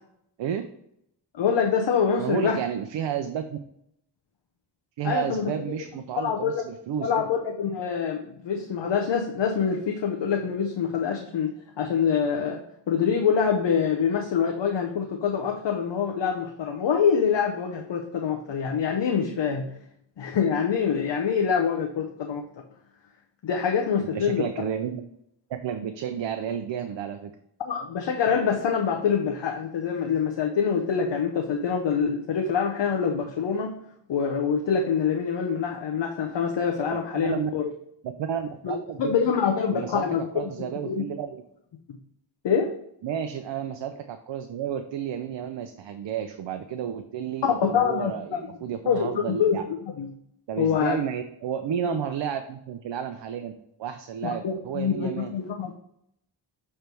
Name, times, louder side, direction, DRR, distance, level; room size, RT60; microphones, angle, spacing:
voice 1, 1.3-2.6 5.0-5.5 6.2-6.6 7.0-19.7 20.2-22.5 23.4-24.4 27.6-33.8 34.1-37.7 38.6-40.2 40.9-41.1 42.4-42.7 47.6-48.1 48.9-49.6 50.0-50.1 50.6-51.0 51.8-51.9 54.4-55.7, left 6 dB, 70° left, 2 dB, 0.7 m, -25 dB
voice 2, 2.2-3.6 5.0-7.3 24.0-25.0 25.5-27.3 36.9-37.5 38.0-39.1 39.7-40.1 40.3-41.4 43.0-49.6 50.5-53.5 53.8-55.3, right 8 dB, 75° right, 7 dB, 0.6 m, -31 dB
6.6 x 3.4 x 4.4 m, 0.75 s
cardioid pair, 80°, 44 cm